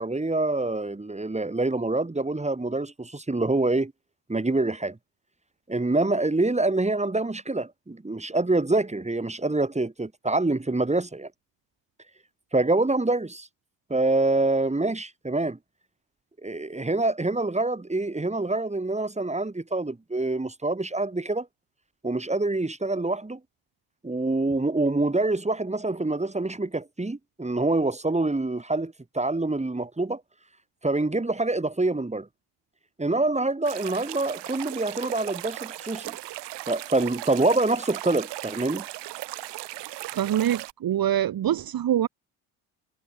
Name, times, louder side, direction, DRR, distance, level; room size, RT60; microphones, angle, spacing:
voice 1, 0.0-3.9 4.3-5.0 5.7-11.3 12.5-13.5 13.9-15.6 16.4-21.5 22.0-23.4 24.0-30.2 30.8-32.3 33.0-36.2 36.7-38.8, right 2 dB, 15° right, 7.3 m, -26 dB
sound 1, 33.7-40.7, right 16 dB, 65° right, 4.1 m, -37 dB
voice 2, 40.1-42.1, right 11 dB, 50° right, 2.4 m, -24 dB
hypercardioid pair, 65°, 44 cm